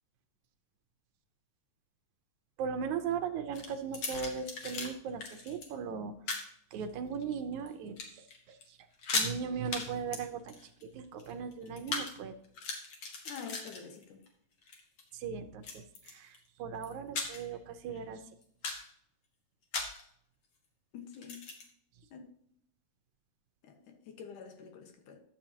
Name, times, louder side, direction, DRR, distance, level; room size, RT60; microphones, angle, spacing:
voice 1, 2.6-6.1 6.7-8.2 9.1-10.6 10.9-12.3 15.2-16.3 16.6-18.2, right 6 dB, 80° right, 2.2 m, -38 dB
sound 1, 3.5-4.9 5.2-5.7 6.3-6.5 7.1-7.7 8.0-8.4 8.6-8.7 8.9-9.3 9.7-9.9 10.1-12.1 12.4-14.3 14.6-15.0 15.6-16.4 16.8-17.6 17.9-18.0 18.4-18.9 19.7-20.0 21.1-21.7, left 4 dB, 55° left, 2.4 m, -37 dB
voice 2, 13.3-14.2 20.9-21.5 22.1-22.3 23.6-25.2, left 6 dB, 85° left, 2.9 m, -47 dB
12.0 x 7.6 x 2.8 m
omnidirectional pair, 3.5 m